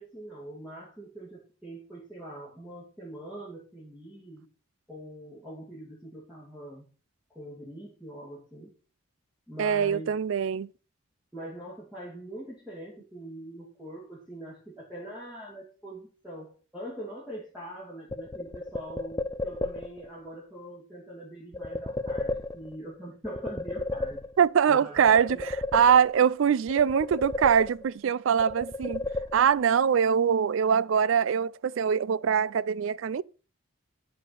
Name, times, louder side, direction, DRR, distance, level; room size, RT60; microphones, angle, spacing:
voice 1, 0.0-4.5 4.9-6.9 7.3-8.7 9.5-10.1 11.3-24.2 24.7-25.4, right 1 dB, 5° right, 2.5 m, -43 dB
voice 2, 9.6-10.7 24.4-29.0 29.3-33.2, right 7 dB, 70° right, 0.3 m, -23 dB
sound 1, 18.1-20.1 21.5-22.9 23.2-24.6 25.0-26.3 26.7-28.0 28.4-29.8, left 2 dB, 15° left, 0.5 m, -34 dB
10.5 x 5.0 x 5.6 m
head